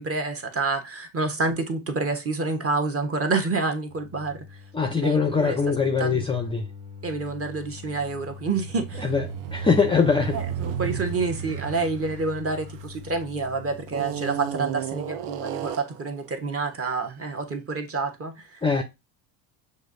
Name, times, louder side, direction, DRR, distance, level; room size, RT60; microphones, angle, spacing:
voice 1, 0.0-4.6 5.0-5.6 6.0-6.3 7.0-9.1 10.3-18.6, right 3 dB, 30° right, 1.0 m, -28 dB
sound 1, 3.9-15.7, left 5 dB, 65° right, 1.9 m, -44 dB
voice 2, 4.7-6.7 9.0-9.3 9.5-10.4 18.6-18.8, left 5 dB, 10° left, 0.4 m, -22 dB
sound 2, 8.4-13.3 13.9-16.1, right 10 dB, 85° right, 0.6 m, -34 dB
6.1 x 2.7 x 2.5 m
supercardioid pair, 90°, 48 cm